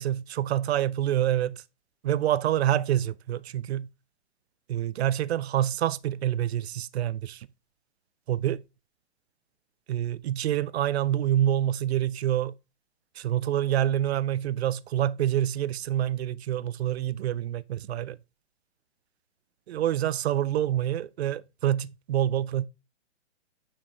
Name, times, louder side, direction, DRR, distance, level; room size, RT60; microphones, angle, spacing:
voice 1, 0.0-1.6 2.0-3.9 4.7-7.5 8.3-8.6 9.9-12.5 13.2-18.2 19.7-22.7, right 11 dB, 65° right, 0.5 m, -27 dB
6.8 x 5.8 x 3.2 m
hypercardioid pair, 145°, 35 cm